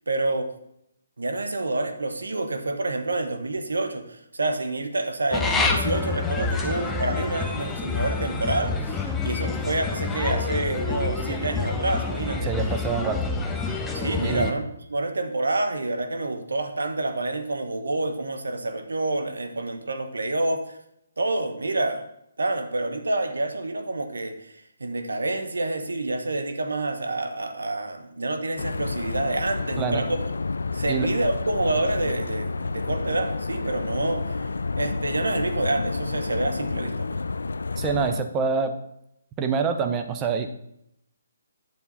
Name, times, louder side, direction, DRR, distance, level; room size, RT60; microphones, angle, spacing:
voice 1, 0.1-0.5 1.2-13.1 13.9-20.8 21.2-22.1 22.4-24.5 24.8-30.3 30.7-34.5 34.8-37.2, right 2 dB, 90° right, 8 dB, 1.3 m, -28 dB
sound 1, 5.3-14.5, left 4 dB, 10° left, 0.8 m, -27 dB
voice 2, 12.4-13.2 14.2-14.5 29.8-30.0 30.9-31.1 37.8-38.7 39.4-40.6, right 5 dB, 20° right, 7 dB, 0.8 m, -26 dB
sound 2, 28.6-38.2, left 3 dB, 85° left, 0.4 m, -30 dB
9.1 x 7.4 x 4.2 m, 0.77 s
hypercardioid pair, 150°, 0 cm